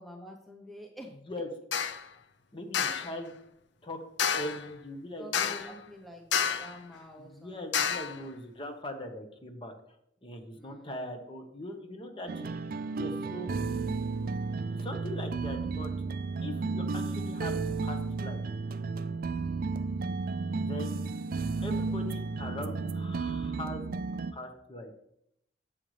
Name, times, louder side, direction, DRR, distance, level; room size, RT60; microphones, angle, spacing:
voice 1, 0.0-1.1 5.2-7.9 10.5-11.1 20.0-20.3, equal, ahead, 2 dB, 0.8 m, -49 dB
sound 1, 1.7-2.0 2.7-3.1 4.2-4.7 5.3-5.8 6.3-6.8 7.7-8.2, left 7 dB, 80° left, 0.6 m, -29 dB
voice 2, 2.5-3.3 3.8-4.0 4.3-5.8 7.2-9.7 10.2-12.5 12.9-13.5 14.7-15.9 16.4-18.4 20.6-20.9 21.6-23.9 24.3-24.9, left 1 dB, 30° left, 5 dB, 1.2 m, -41 dB
sound 2, 12.3-24.3, right 4 dB, 55° right, 0.4 m, -33 dB
10.5 x 7.7 x 3.3 m, 0.76 s
head